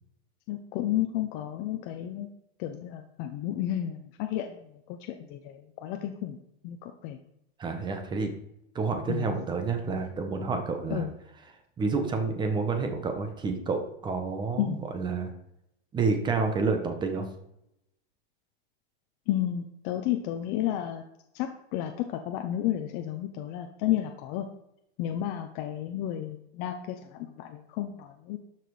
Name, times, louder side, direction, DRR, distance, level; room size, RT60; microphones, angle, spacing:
voice 1, 0.5-2.3 2.6-6.4 6.6-7.2 9.1-9.4 10.9-11.1 14.6-14.8 19.3-21.0 21.3-24.5 25.0-28.4, left 12 dB, 30° left, 5 dB, 0.7 m, -32 dB
voice 2, 7.6-8.3 8.7-11.1 11.8-15.3 15.9-17.3 25.2-25.3, right 4 dB, 15° right, 5 dB, 1.2 m, -29 dB
12.5 x 6.0 x 4.9 m, 0.80 s
supercardioid pair, 155°, 32 cm